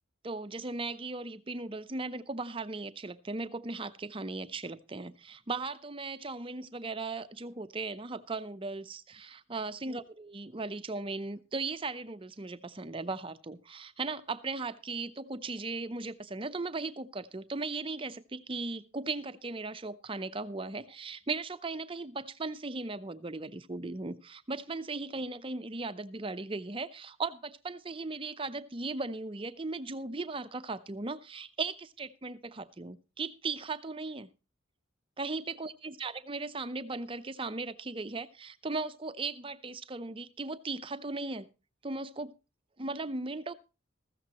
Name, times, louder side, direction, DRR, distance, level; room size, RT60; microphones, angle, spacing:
voice 1, 0.2-34.3 35.2-41.5 41.8-42.3 42.8-43.5, right 3 dB, 25° right, 0.6 m, -37 dB
14.5 x 13.5 x 3.0 m
head